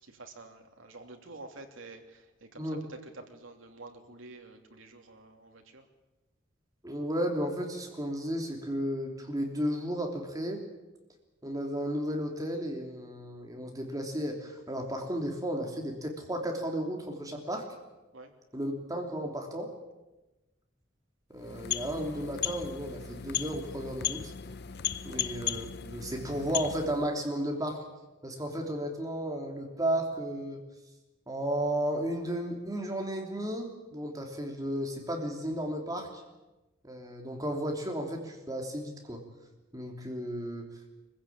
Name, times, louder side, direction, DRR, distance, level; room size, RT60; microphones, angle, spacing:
voice 1, 0.0-5.9 18.1-18.3 25.0-25.2, right 2 dB, 80° right, 4 dB, 2.9 m, -49 dB
voice 2, 6.8-10.6 11.4-17.6 18.5-19.7 21.3-24.3 25.0-27.8 28.2-30.6 31.3-36.2 36.8-39.2 39.7-40.7, equal, 20° right, 2 dB, 3.2 m, -33 dB
sound 1, 21.3-27.1, left 11 dB, 55° left, 0.7 m, -36 dB
24.5 x 15.5 x 8.8 m, 1.1 s
head